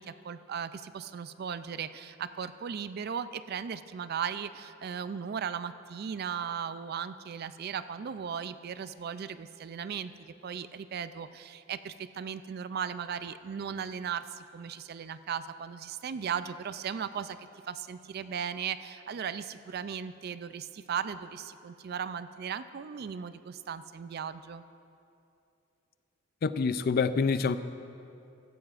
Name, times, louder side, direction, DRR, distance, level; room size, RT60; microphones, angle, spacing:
voice 1, 0.0-10.1 10.4-17.4 17.7-24.6, right 7 dB, 50° right, 13 dB, 0.3 m, -37 dB
voice 2, 26.4-27.6, left 5 dB, 50° left, 13 dB, 0.4 m, -26 dB
15.0 x 14.0 x 2.5 m, 2.7 s
head